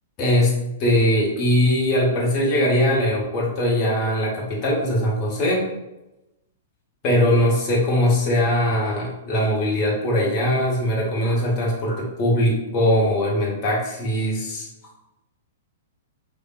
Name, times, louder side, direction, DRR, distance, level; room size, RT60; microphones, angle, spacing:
voice 1, 0.2-5.7 7.0-14.7, equal, 35° left, -4 dB, 0.8 m, -21 dB
3.3 x 2.1 x 2.3 m, 0.94 s
figure-of-eight pair, 110°, 0 cm